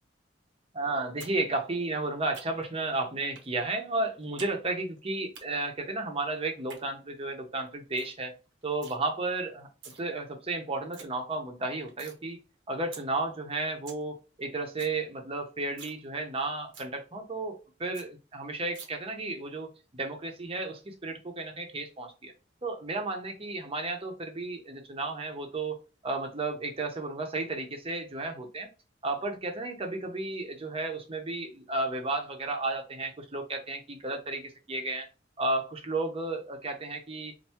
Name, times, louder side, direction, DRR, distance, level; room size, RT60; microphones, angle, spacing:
voice 1, 0.7-8.3 8.6-9.7 10.0-12.4 12.7-22.3 22.6-25.8 26.0-28.7 29.0-35.1 35.4-37.3, right 2 dB, 30° right, 4 dB, 0.8 m, -33 dB
sound 1, 1.2-1.4 1.6-2.8 3.3-3.5 3.8-4.5 4.8-5.4 6.5-6.8 7.3-7.4 7.7-7.8 8.0-8.2 8.4-9.0 9.6-10.0 10.4-10.5 10.7-11.0 11.4-12.2 12.5-12.6 12.9-13.0 13.4-13.5 13.7-14.0 14.3-14.4 14.6-15.0 15.3-15.4 15.7-16.0 16.3-16.4 16.7-16.9 17.3-17.4 17.6-17.7 17.9-18.1 18.7-18.9, right 5 dB, 80° right, 1.0 m, -47 dB
4.5 x 2.6 x 2.9 m, 0.32 s
head